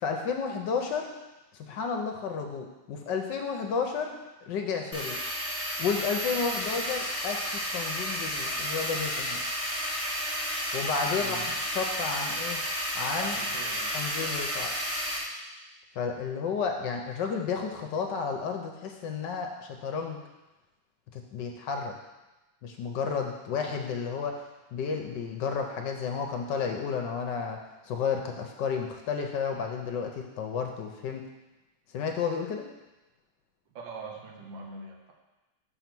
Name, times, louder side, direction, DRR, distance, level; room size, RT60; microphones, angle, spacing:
voice 1, 0.0-1.1 1.5-4.2 4.4-5.2 5.8-9.4 10.7-11.4 11.7-12.6 12.9-13.4 13.9-14.7 16.0-20.2 21.1-21.9 22.6-24.4 24.7-31.2 31.9-32.7, left 5 dB, 70° left, 3 dB, 1.3 m, -32 dB
sound 1, 4.9-15.2, equal, 10° right, 0.9 m, -32 dB
voice 2, 11.2-11.6 13.2-14.0 33.8-35.1, right 4 dB, 70° right, 0 dB, 1.7 m, -42 dB
6.8 x 4.5 x 6.0 m, 1.1 s
omnidirectional pair, 2.2 m